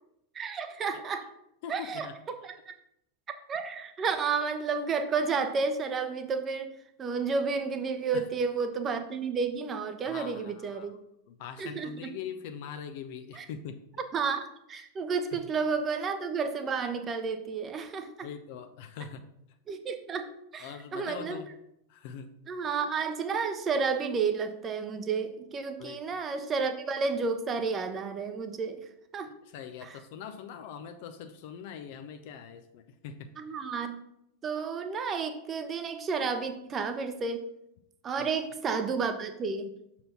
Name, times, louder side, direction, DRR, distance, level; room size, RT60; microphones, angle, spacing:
voice 1, 0.3-1.3 1.7-2.7 3.5-6.7 7.0-11.0 11.6-12.1 13.3-13.5 14.1-18.3 19.7-21.4 22.5-28.8 29.1-29.3 29.8-30.0 33.4-34.0 34.4-37.4 38.0-39.7, right 5 dB, 25° right, 8 dB, 0.8 m, -31 dB
voice 2, 1.6-2.2 8.1-8.3 10.0-10.9 11.3-13.8 15.3-15.4 18.2-19.2 20.6-21.5 21.9-22.3 25.8-26.0 29.5-33.3 38.2-38.3, left 7 dB, 50° left, 8 dB, 0.5 m, -42 dB
6.4 x 4.2 x 5.7 m, 0.79 s
figure-of-eight pair, 90°, 0 cm